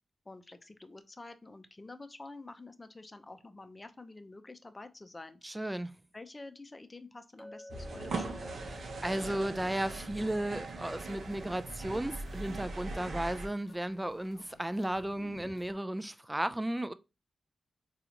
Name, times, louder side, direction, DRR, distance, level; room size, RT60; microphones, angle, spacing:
voice 1, 0.3-5.4 6.1-8.6, left 2 dB, 30° left, 0.6 m, -49 dB
voice 2, 5.4-5.9 8.8-16.9, right 1 dB, 15° right, 0.4 m, -34 dB
Chink clink, 7.4-11.8, left 1 dB, ahead, 0.9 m, -53 dB
sound 1, 7.7-13.5, right 3 dB, 70° right, 0.7 m, -40 dB
sound 2, 10.7-15.7, left 3 dB, 80° left, 0.6 m, -58 dB
3.9 x 2.4 x 2.9 m
supercardioid pair, 45°, 0 cm